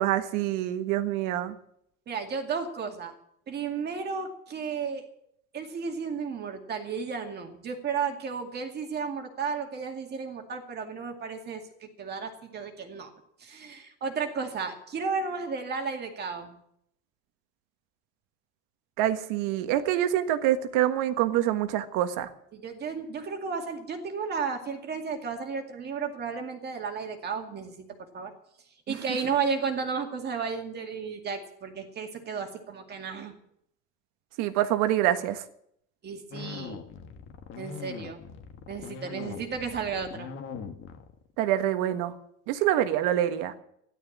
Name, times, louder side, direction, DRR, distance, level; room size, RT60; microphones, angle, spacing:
voice 1, 0.0-1.5 19.0-22.3 28.9-29.0 34.4-35.4 41.4-42.1 42.5-43.5, right 12 dB, 70° right, 9 dB, 1.5 m, -26 dB
voice 2, 2.1-3.1 3.5-5.0 5.5-13.1 13.4-16.6 22.5-27.9 28.1-28.3 28.9-33.3 36.0-36.8 37.6-38.2 38.7-40.3, right 5 dB, 30° right, 3 dB, 2.3 m, -33 dB
sound 1, 36.3-41.3, left 6 dB, 40° left, 1.6 m, -41 dB
14.0 x 12.0 x 7.3 m, 0.71 s
cardioid pair, 160°, 33 cm